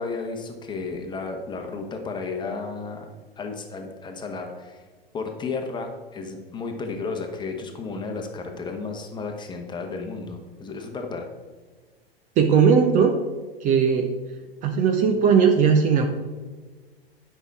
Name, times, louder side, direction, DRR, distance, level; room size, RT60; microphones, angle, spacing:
voice 1, 0.0-3.1 3.4-4.8 5.1-11.3, left 4 dB, 15° left, 3 dB, 1.3 m, -33 dB
voice 2, 12.4-13.2 13.6-14.1 14.6-16.1, right 6 dB, 25° right, 5 dB, 0.7 m, -18 dB
10.5 x 5.8 x 4.8 m, 1.4 s
figure-of-eight pair, 95°, 30 cm